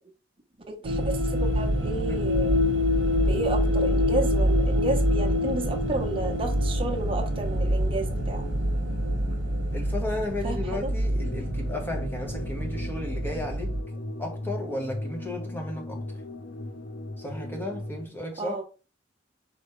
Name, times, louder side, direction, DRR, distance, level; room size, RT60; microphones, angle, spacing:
voice 1, 0.7-2.7 3.2-8.5 10.4-10.9 18.4-18.6, right 2 dB, 30° right, 0.8 m, -32 dB
sound 1, 0.8-13.8, equal, 90° right, 0.9 m, -26 dB
sound 2, 1.7-18.1, left 2 dB, 70° left, 0.5 m, -39 dB
voice 2, 9.7-13.7 14.2-16.2 17.2-18.6, left 1 dB, 10° left, 1.1 m, -34 dB
4.2 x 3.4 x 3.1 m
head